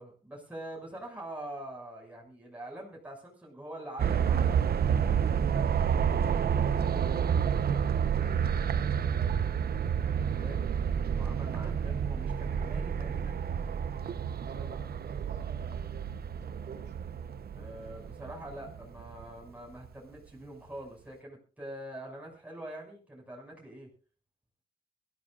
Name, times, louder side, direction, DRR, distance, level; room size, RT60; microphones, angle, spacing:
voice 1, 0.0-4.6 10.0-10.7 11.1-13.4 17.5-23.9, right 1 dB, 10° right, -2 dB, 6.5 m, -44 dB
sound 1, 4.0-19.2 19.8-19.9, right 7 dB, 70° right, 1.0 m, -29 dB
voice 2, 6.7-9.3 11.6-11.7 14.4-16.9, right 5 dB, 90° right, 3 dB, 3.6 m, -48 dB
22.5 x 15.0 x 2.5 m, 0.38 s
cardioid pair, 100°, 17 cm